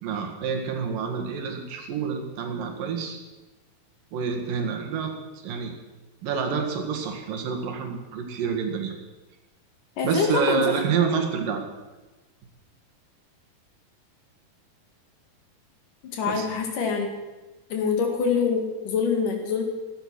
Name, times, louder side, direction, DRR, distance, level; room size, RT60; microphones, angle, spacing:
voice 1, 0.0-3.2 4.1-5.1 5.4-5.7 6.2-8.9 10.0-11.6 16.3-16.5, right 6 dB, 75° right, 3 dB, 3.5 m, -28 dB
voice 2, 10.0-11.1 16.1-17.1 17.7-19.6, left 5 dB, 65° left, 3 dB, 3.7 m, -25 dB
16.0 x 12.0 x 6.2 m, 1.2 s
omnidirectional pair, 4.0 m